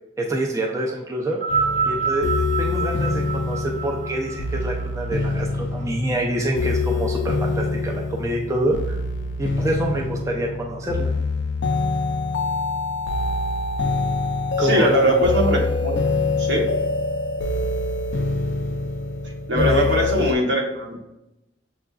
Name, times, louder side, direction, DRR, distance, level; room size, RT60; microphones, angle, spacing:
voice 1, 0.2-1.4 1.9-2.3 2.6-9.0 9.4-11.1 14.6-15.3 19.5-20.4, right 1 dB, 15° right, -1 dB, 0.4 m, -26 dB
sound 1, 1.3-5.8 6.7-6.8, right 5 dB, 35° right, 0.8 m, -27 dB
sound 2, 1.5-20.3, left 3 dB, 70° left, 0.4 m, -25 dB
voice 2, 14.6-16.0 16.4-16.7 19.5-21.0, right 1 dB, 80° right, 0 dB, 0.9 m, -21 dB
6.6 x 2.4 x 2.3 m, 0.93 s
head